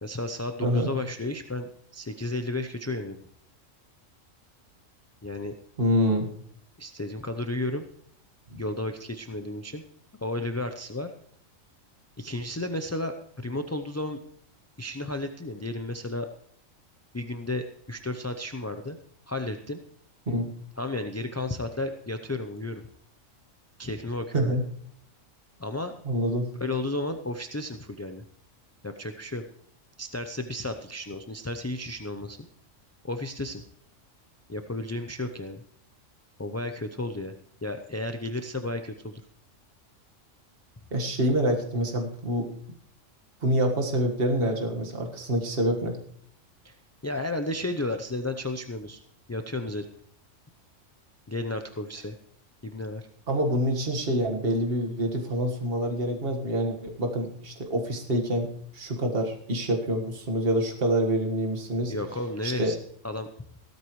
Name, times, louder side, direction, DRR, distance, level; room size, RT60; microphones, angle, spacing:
voice 1, 0.0-3.2 5.2-5.5 6.8-7.8 8.5-9.8 10.2-11.1 12.2-14.2 14.8-16.3 17.1-19.0 19.3-19.8 20.8-22.8 23.8-24.6 25.6-26.0 26.6-28.2 28.8-29.4 30.0-32.4 33.0-33.6 34.5-35.6 36.4-37.3 37.6-39.2 46.6-46.8 47.0-49.0 49.3-49.9 51.3-52.2 52.6-53.1 61.9-62.8 63.0-63.3, left 2 dB, 20° left, 6 dB, 0.4 m, -33 dB
voice 2, 5.8-6.3 8.5-8.6 20.3-20.5 24.3-24.6 26.1-26.5 40.9-42.5 43.4-46.0 53.3-61.9 62.4-62.7, equal, 45° right, 2 dB, 1.9 m, -26 dB
16.0 x 13.5 x 3.1 m, 0.64 s
omnidirectional pair, 1.4 m